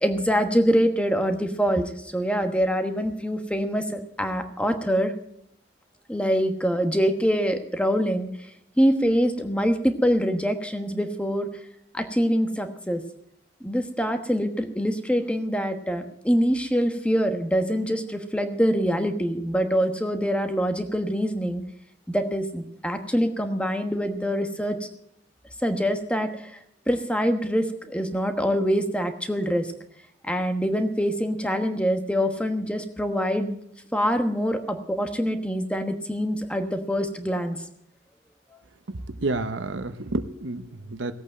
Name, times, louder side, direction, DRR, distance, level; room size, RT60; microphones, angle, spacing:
voice 1, 0.0-5.1 6.1-8.3 8.8-11.5 11.9-13.0 13.6-21.6 22.1-24.8 25.6-26.6 26.9-29.7 30.2-33.5 33.9-37.6, equal, 5° left, 7 dB, 1.2 m, -24 dB
voice 2, 38.9-41.1, right 2 dB, 90° right, 9 dB, 0.9 m, -30 dB
17.0 x 8.5 x 7.6 m, 0.71 s
head